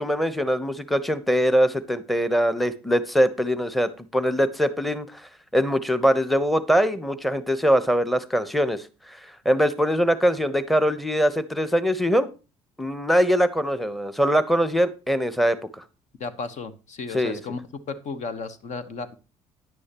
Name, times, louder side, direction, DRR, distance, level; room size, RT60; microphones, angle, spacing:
voice 1, 0.0-12.3 12.8-15.8 17.1-17.4, equal, ahead, 13 dB, 1.0 m, -22 dB
voice 2, 16.2-17.6 17.9-19.1, left 4 dB, 55° left, 12 dB, 1.3 m, -34 dB
10.5 x 9.6 x 3.0 m, 0.32 s
hypercardioid pair, 65°, 14 cm